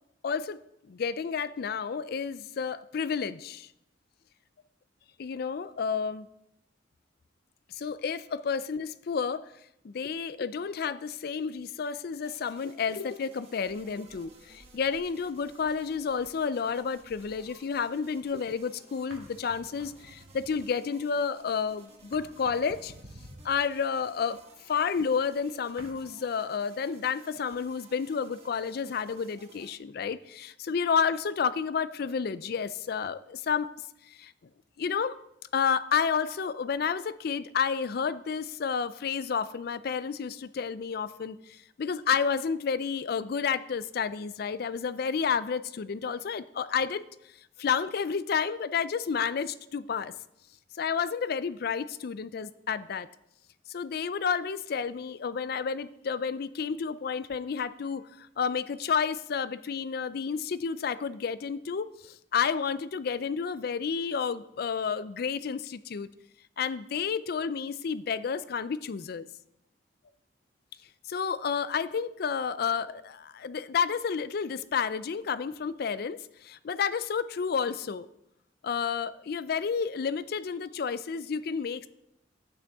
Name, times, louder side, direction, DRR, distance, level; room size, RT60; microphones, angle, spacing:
voice 1, 0.2-0.6 0.9-3.7 5.2-6.3 7.7-9.5 9.8-22.9 23.4-24.4 24.7-33.7 34.1-34.3 34.8-35.2 35.5-47.0 47.6-50.1 50.8-53.1 53.7-66.1 66.6-69.3 71.1-78.1 78.6-81.9, left 6 dB, 55° left, 15 dB, 0.4 m, -30 dB
sound 1, 12.2-29.7, right 2 dB, 35° right, 1.5 m, -57 dB
sound 2, 13.6-18.6 19.0-25.9, right 1 dB, 75° right, 2.1 m, -54 dB
11.0 x 8.8 x 3.5 m, 0.82 s
head